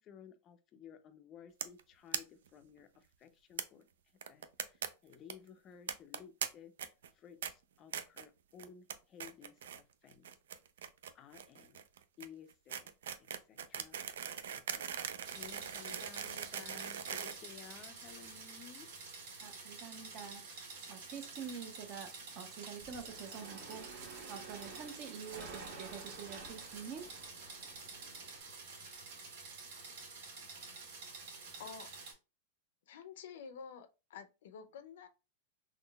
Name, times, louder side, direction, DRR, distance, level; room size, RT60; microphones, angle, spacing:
voice 1, 0.0-3.9 4.3-6.7 7.1-10.3 11.1-11.8 12.2-12.9 13.2-14.0 14.4-14.9 15.3-18.9, left 7 dB, 25° left, 0.4 m, -56 dB
sound 1, 1.6-1.8 2.1-2.2 2.5-2.6 2.8-2.9 3.6-3.7 4.2-4.9 5.1-5.3 5.9-6.5 6.8-7.1 7.4-7.5 7.9-8.3 8.6-8.9 9.2-9.8 10.1-18.1, right 8 dB, 90° right, 0.4 m, -41 dB
sound 2, 15.2-32.1, right 4 dB, 70° right, 1.7 m, -49 dB
voice 2, 19.4-27.1, right 7 dB, 35° right, 0.6 m, -47 dB
sound 3, 22.8-28.4, right 3 dB, 50° right, 1.5 m, -52 dB
voice 3, 32.9-35.1, left 7 dB, 75° left, 0.5 m, -49 dB
3.7 x 3.0 x 2.2 m
supercardioid pair, 155°, 0 cm